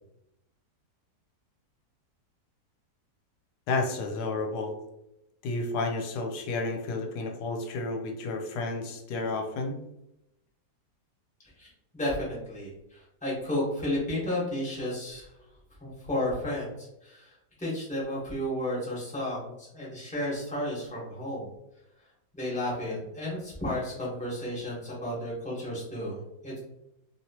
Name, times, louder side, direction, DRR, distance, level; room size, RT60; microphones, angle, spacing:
voice 1, 3.7-4.8 5.4-9.8, left 3 dB, 80° left, 3 dB, 1.1 m, -31 dB
voice 2, 11.9-15.3 15.8-17.3 17.6-21.5 22.3-26.6, left 1 dB, 5° left, -6 dB, 1.1 m, -32 dB
2.9 x 2.8 x 2.8 m, 0.86 s
omnidirectional pair, 1.7 m